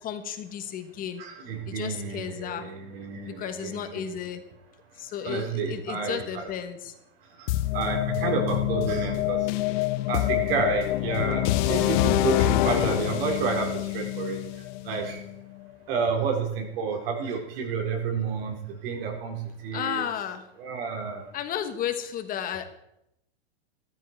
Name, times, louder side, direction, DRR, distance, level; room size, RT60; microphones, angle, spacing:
voice 1, 0.0-1.2 1.7-2.7 3.2-4.4 5.0-6.9 19.7-20.4 21.3-22.6, left 9 dB, 25° left, 8 dB, 1.4 m, -33 dB
voice 2, 1.2-4.1 5.2-6.5 7.4-9.5 10.1-14.4 14.8-15.2 15.9-20.1 20.6-21.3, right 5 dB, 55° right, 2 dB, 4.1 m, -30 dB
sound 1, 7.5-15.4, left 15 dB, 45° left, 0.7 m, -26 dB
14.5 x 13.5 x 4.5 m, 0.79 s
hypercardioid pair, 140°, 34 cm